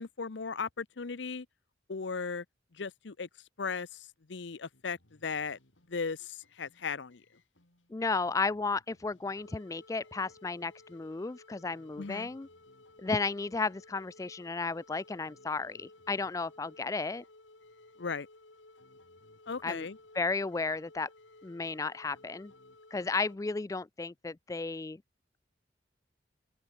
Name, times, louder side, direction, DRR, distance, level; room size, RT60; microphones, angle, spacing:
voice 1, 0.0-1.5 1.9-2.4 2.7-3.3 3.6-5.6 5.9-7.2 12.0-12.3 18.0-18.3 19.5-20.0, left 5 dB, 70° left, 0.7 m, -37 dB
sound 1, 4.7-23.4, left 2 dB, 90° left, 4.0 m, -58 dB
voice 2, 7.9-12.5 13.0-17.2 19.6-19.8 20.2-21.1 21.4-22.5 22.9-25.0, left 4 dB, 15° left, 0.3 m, -33 dB
open air
head